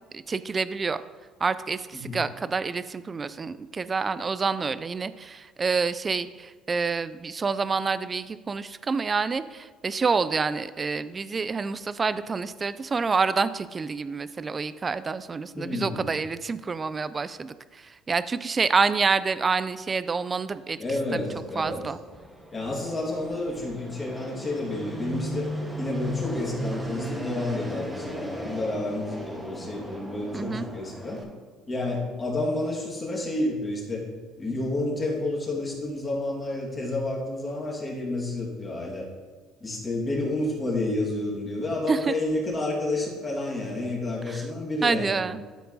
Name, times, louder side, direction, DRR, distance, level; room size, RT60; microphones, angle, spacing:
voice 1, 0.1-1.0 1.4-20.8 21.1-21.2 21.6-22.0 30.3-30.7 41.9-42.1 44.3-44.4 44.8-45.4, right 4 dB, 25° right, 14 dB, 0.3 m, -27 dB
voice 2, 15.5-16.1 20.8-21.9 22.5-25.5 25.8-31.2 31.7-34.1 34.4-39.1 39.6-45.2, left 2 dB, 25° left, -3 dB, 2.3 m, -30 dB
Fixed-wing aircraft airplane, 21.0-31.2, right 1 dB, 10° right, 1.4 m, -36 dB
12.0 x 4.5 x 4.1 m, 1.4 s
cardioid pair, 105°, 0 cm